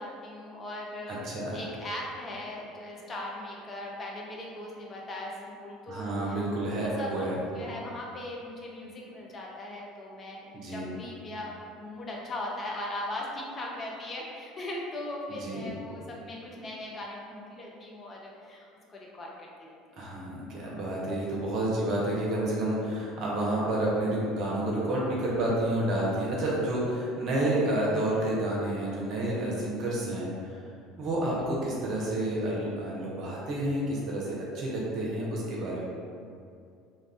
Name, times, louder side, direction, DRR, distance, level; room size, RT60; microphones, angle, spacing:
voice 1, 0.0-7.3 7.5-20.0 31.4-31.5, left 1 dB, 30° left, -2 dB, 0.5 m, -39 dB
voice 2, 1.2-1.6 5.9-7.6 10.5-10.9 15.4-15.7 20.0-30.6 31.0-35.8, right 1 dB, 50° right, -5 dB, 0.7 m, -30 dB
2.4 x 2.3 x 3.4 m, 2.4 s
figure-of-eight pair, 65°, 0 cm